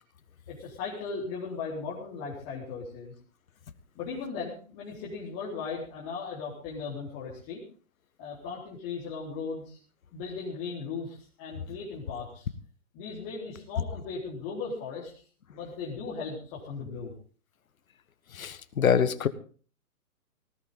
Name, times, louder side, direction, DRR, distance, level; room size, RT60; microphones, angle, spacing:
voice 1, 0.5-3.1 3.9-7.6 8.2-9.8 10.1-12.5 12.9-15.2 15.5-17.1, left 4 dB, 25° left, -6 dB, 4.2 m, -37 dB
voice 2, 18.3-19.3, left 7 dB, 70° left, 14 dB, 1.5 m, -25 dB
19.0 x 15.5 x 3.8 m, 0.41 s
hypercardioid pair, 145°, 44 cm